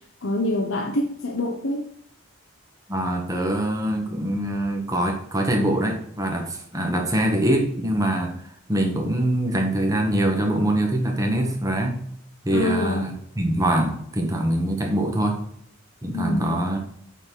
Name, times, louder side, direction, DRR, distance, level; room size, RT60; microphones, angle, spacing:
voice 1, 0.2-1.9 12.5-13.1 16.1-16.6, left 1 dB, 75° left, 1 dB, 1.0 m, -25 dB
voice 2, 2.9-8.3 8.7-12.0 12.4-15.4 16.0-16.8, right 1 dB, 15° right, 2 dB, 1.4 m, -24 dB
8.8 x 4.2 x 4.6 m, 0.70 s
head